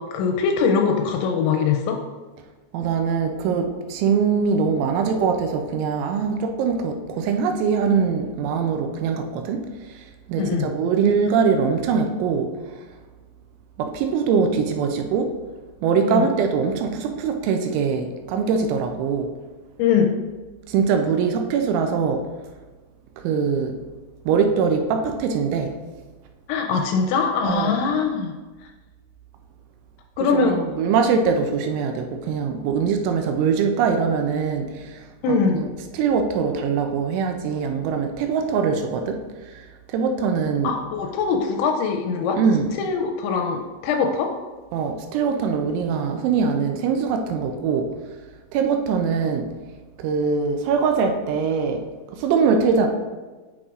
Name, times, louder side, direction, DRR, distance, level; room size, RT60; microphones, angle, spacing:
voice 1, 0.0-2.0 10.4-10.7 16.1-16.3 19.8-20.1 26.5-28.3 30.2-30.6 35.2-35.7 40.6-42.4 42.8-44.3, left 5 dB, 85° left, 3 dB, 2.7 m, -22 dB
voice 2, 2.7-12.5 12.8-12.9 13.8-15.3 15.8-19.3 20.7-22.2 23.2-23.8 24.3-25.7 27.5-27.8 30.3-35.7 35.9-40.7 42.4-42.7 44.7-47.9 48.5-49.5 50.0-51.8 52.1-52.9, right 5 dB, 85° right, 5 dB, 2.9 m, -22 dB
9.2 x 6.2 x 2.4 m, 1.3 s
omnidirectional pair, 5.6 m